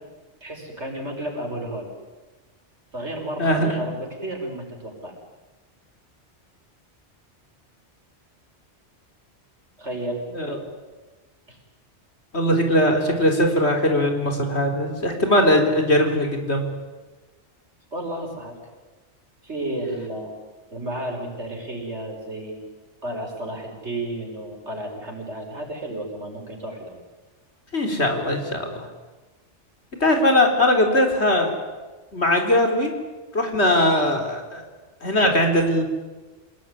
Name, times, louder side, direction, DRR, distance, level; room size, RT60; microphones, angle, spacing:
voice 1, 0.4-1.9 2.9-5.1 9.8-10.2 11.5-11.6 17.9-18.5 19.4-20.3 20.7-22.6 23.0-27.0, right 1 dB, 75° right, 1 dB, 6.3 m, -32 dB
voice 2, 3.4-3.8 10.3-10.6 12.3-16.7 27.7-28.9 30.0-31.5 32.1-32.9 33.3-34.6 35.0-35.8, left 1 dB, 65° left, 4 dB, 4.3 m, -20 dB
27.5 x 19.0 x 10.0 m, 1.3 s
omnidirectional pair, 1.2 m